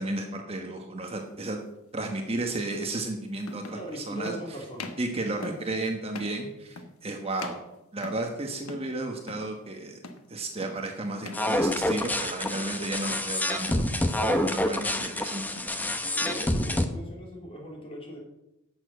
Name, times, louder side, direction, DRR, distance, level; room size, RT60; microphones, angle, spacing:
voice 1, 0.0-1.6 1.9-4.3 5.0-7.6 7.9-10.0 10.3-13.9 14.2-15.7, right 2 dB, 25° right, 3 dB, 1.1 m, -33 dB
sound 1, 1.2-1.4 2.7-2.8 3.4-3.9 4.2-4.4 4.7-5.1 5.4-5.7 6.1-6.4 6.8-7.1 7.4-8.3 8.7-8.9 9.2-9.5 10.0-10.3 10.6-10.9 11.2-11.5 11.8-12.2 12.5-13.3 13.7-13.9 14.3-14.6 14.9-15.3 15.6-16.4, left 3 dB, 75° left, 1.2 m, -43 dB
voice 2, 3.7-5.0 14.4-14.7 16.1-18.2, equal, 25° left, -1 dB, 3.3 m, -40 dB
sound 2, 11.3-16.8, left 1 dB, 10° left, 0.7 m, -27 dB
11.5 x 6.8 x 7.8 m, 0.91 s
head